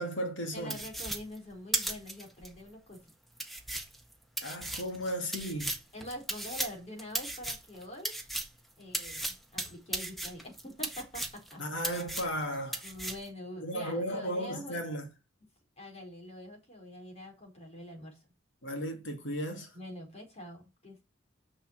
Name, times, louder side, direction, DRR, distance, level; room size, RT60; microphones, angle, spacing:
voice 1, 0.0-0.8 4.4-5.8 11.6-12.8 13.6-15.1 18.6-19.7, equal, 70° left, 2.7 m, -35 dB
voice 2, 0.5-3.1 5.9-8.2 8.8-11.6 12.8-14.8 15.8-18.2 19.7-21.0, left 1 dB, 35° left, 4.9 m, -45 dB
sound 1, 0.7-2.5 2.9-3.0 3.4-8.6 8.9-11.5 11.8-12.4 12.7-13.3, right 1 dB, ahead, 1.5 m, -36 dB
6.7 x 6.6 x 7.6 m
head